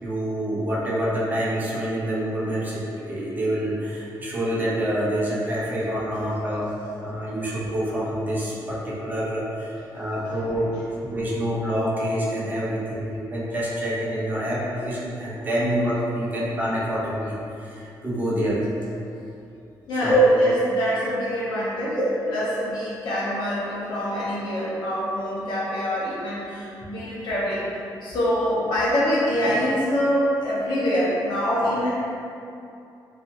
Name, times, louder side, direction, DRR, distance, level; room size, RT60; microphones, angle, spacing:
voice 1, 0.0-6.7 7.0-10.7 11.0-18.6 20.0-20.3 21.9-22.1 31.6-31.7, right 1 dB, 25° right, -6 dB, 0.5 m, -26 dB
voice 2, 19.9-27.7 28.0-32.0, equal, 90° left, -7 dB, 0.7 m, -25 dB
2.6 x 2.4 x 2.6 m, 2.6 s
cardioid pair, 150°, 8 cm